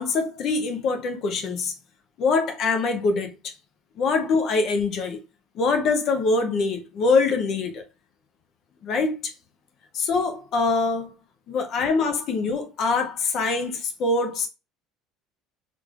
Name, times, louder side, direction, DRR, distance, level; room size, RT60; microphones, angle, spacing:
voice 1, 0.0-1.7 2.2-3.5 4.0-5.2 5.5-7.8 8.8-9.3 9.9-11.1 11.5-14.5, left 4 dB, 55° left, 0.7 m, -24 dB
3.4 x 3.3 x 2.4 m
supercardioid pair, 90°, 0 cm